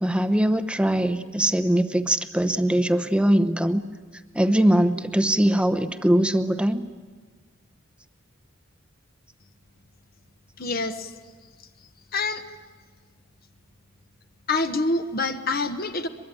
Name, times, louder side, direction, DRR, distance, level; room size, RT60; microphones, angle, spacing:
voice 1, 0.0-3.8 4.3-6.8, right 1 dB, 5° right, 10 dB, 0.8 m, -21 dB
voice 2, 10.6-11.1 12.1-12.4 14.5-16.1, left 3 dB, 45° left, 8 dB, 1.1 m, -26 dB
23.0 x 22.5 x 9.1 m, 1.4 s
head